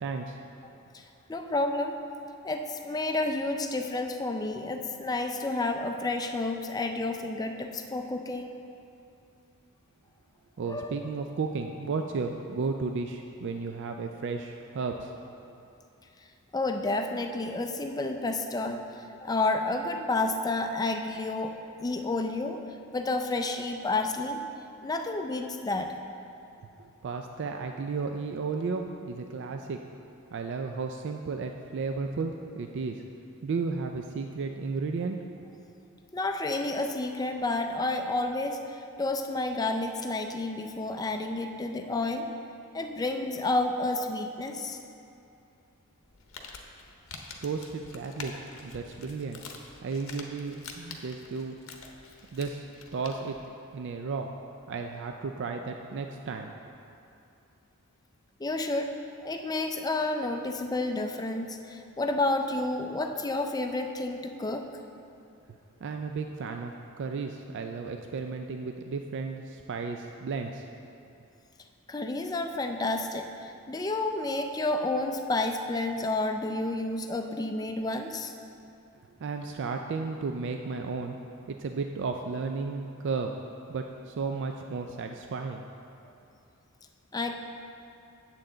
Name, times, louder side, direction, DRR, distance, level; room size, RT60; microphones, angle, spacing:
voice 1, 0.0-0.4 10.6-15.1 26.8-29.8 30.3-33.0 33.4-35.4 47.4-48.3 48.6-49.4 49.8-51.6 52.3-52.7 52.9-53.4 53.7-54.3 54.7-56.5 65.8-70.7 79.2-81.2 81.5-83.3 83.7-85.6, right 4 dB, 55° right, 4 dB, 0.3 m, -33 dB
voice 2, 1.3-1.9 2.4-8.5 10.7-11.0 16.5-21.5 21.8-22.6 22.9-24.4 24.8-25.9 36.1-42.3 42.7-44.8 58.4-58.9 59.2-64.7 71.9-78.3 87.1-87.4, left 2 dB, 15° left, 5 dB, 0.4 m, -30 dB
Crumpling crinkling, 46.0-53.5, left 4 dB, 65° left, 0.8 m, -46 dB
8.9 x 7.4 x 3.8 m, 2.7 s
head